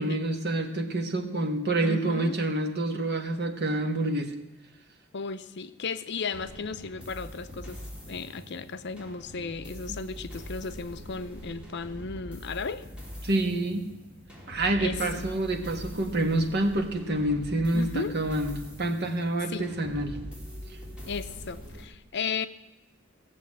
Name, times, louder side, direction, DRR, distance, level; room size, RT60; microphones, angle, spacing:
voice 1, 0.0-4.3 13.2-13.9 14.5-20.2, right 1 dB, 55° right, 4 dB, 1.6 m, -27 dB
voice 2, 1.8-2.4 5.1-12.8 14.8-15.2 17.7-18.1 19.5-19.7 21.0-22.5, left 5 dB, 60° left, 12 dB, 0.7 m, -35 dB
sound 1, 6.3-21.9, equal, 5° right, 4.0 m, -43 dB
16.0 x 7.5 x 8.7 m, 0.97 s
head